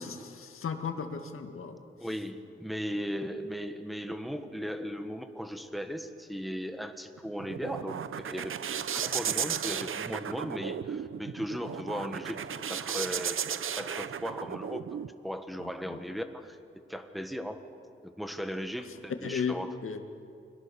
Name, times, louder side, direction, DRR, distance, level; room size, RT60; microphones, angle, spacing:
voice 1, 0.0-1.8 15.6-16.0 19.2-19.6 19.8-20.0, left 6 dB, 85° left, 5 dB, 2.1 m, -35 dB
voice 2, 2.0-8.5 8.9-12.4 12.7-14.9 15.2-16.6 16.9-17.6 18.0-19.8, equal, ahead, 7 dB, 1.6 m, -37 dB
sound 1, 7.2-15.1, right 8 dB, 75° right, 0.8 m, -35 dB
29.5 x 23.0 x 7.1 m, 2.4 s
wide cardioid pair, 115°, 21 cm